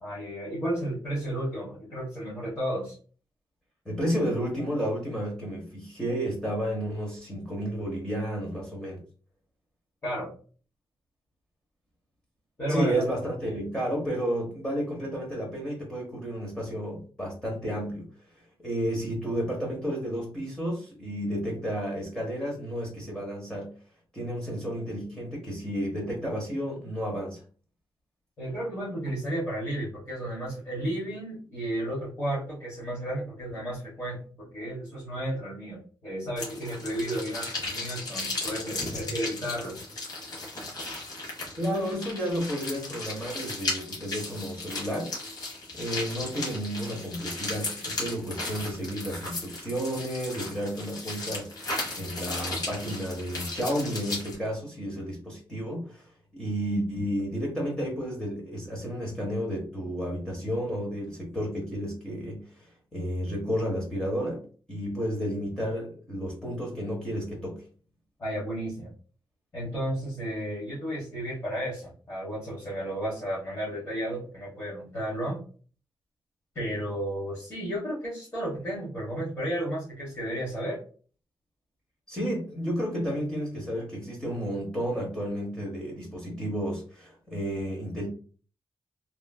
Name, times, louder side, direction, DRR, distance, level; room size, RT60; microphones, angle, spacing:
voice 1, 0.0-3.0 10.0-10.3 12.6-13.0 28.4-39.8 68.2-68.9 69.5-75.4 76.5-80.8, right 1 dB, 35° left, -8 dB, 1.3 m, -33 dB
voice 2, 3.8-9.0 12.7-18.1 18.6-23.7 24.1-27.4 41.5-45.1 45.7-64.4 64.7-67.6 82.1-88.1, equal, 10° left, -3 dB, 0.8 m, -32 dB
sound 1, 36.4-54.4, left 2 dB, 50° left, 1.3 m, -36 dB
3.1 x 2.4 x 2.3 m, 0.40 s
wide cardioid pair, 155°, 9 cm